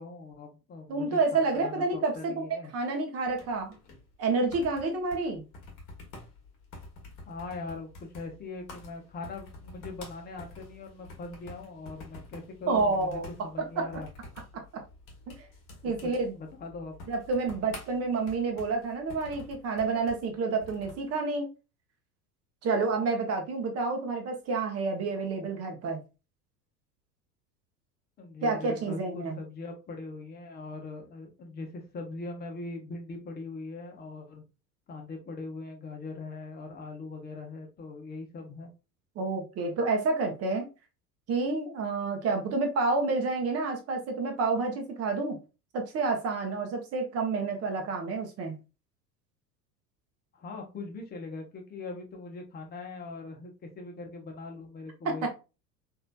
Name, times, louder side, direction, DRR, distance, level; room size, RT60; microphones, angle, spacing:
voice 1, 0.0-2.7 7.3-14.1 15.8-16.9 28.2-34.4 34.9-38.7 50.3-55.3, left 3 dB, 20° left, 0.8 m, -41 dB
voice 2, 0.9-3.7 4.2-5.4 12.7-13.3 13.8-13.9 15.8-16.3 17.1-21.5 22.6-26.0 28.4-29.4 39.2-40.7 41.3-45.4 45.7-48.6 55.0-55.3, right 3 dB, 30° right, 0.9 m, -29 dB
sound 1, 3.2-21.1, left 2 dB, 40° left, 1.2 m, -49 dB
3.1 x 2.7 x 2.2 m
figure-of-eight pair, 75°, 48 cm